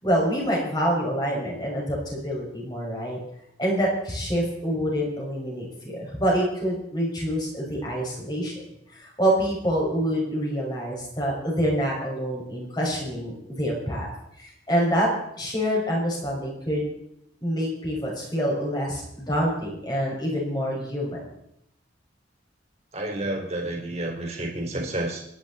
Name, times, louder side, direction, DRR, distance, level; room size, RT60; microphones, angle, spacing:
voice 1, 0.0-3.2 3.6-8.5 9.0-14.1 14.4-15.1 15.4-16.8 17.4-21.2, equal, 25° left, -3 dB, 6.3 m, -26 dB
voice 2, 22.9-25.2, right 1 dB, 35° right, 1 dB, 4.1 m, -30 dB
28.5 x 11.0 x 4.3 m, 0.77 s
head